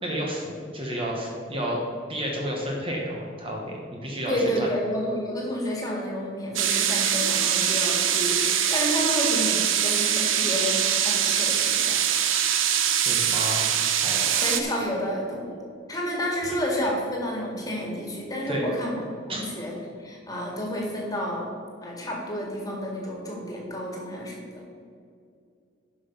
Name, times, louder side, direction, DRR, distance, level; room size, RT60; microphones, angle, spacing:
voice 1, 0.0-1.8 2.1-4.7 12.5-13.6 14.0-14.3 18.5-18.6 19.3-19.4, equal, 25° right, -2 dB, 1.3 m, -31 dB
voice 2, 4.3-12.0 14.3-15.6 15.9-19.7 20.0-21.5 21.8-24.4, equal, 20° left, -2 dB, 2.1 m, -30 dB
sound 1, 6.6-14.6, right 9 dB, 80° right, 0.8 m, -23 dB
11.5 x 5.8 x 5.4 m, 2.4 s
head